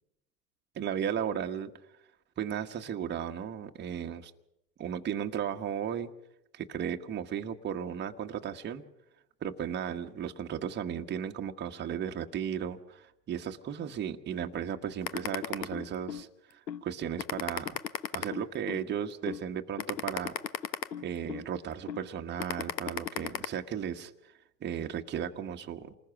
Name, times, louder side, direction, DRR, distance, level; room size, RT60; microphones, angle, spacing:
voice 1, 0.7-1.7 2.4-4.3 4.8-6.1 6.5-8.8 9.4-17.8 18.1-20.3 21.0-24.1 24.6-25.9, right 8 dB, 20° right, 4 dB, 1.3 m, -35 dB
sound 1, 15.1-16.2 16.7-16.8 17.2-18.8 19.3-19.4 19.8-21.4 21.9-22.0 22.4-23.5, left 8 dB, 90° left, 1.3 m, -34 dB
27.5 x 20.0 x 6.0 m, 0.83 s
hypercardioid pair, 110°, 49 cm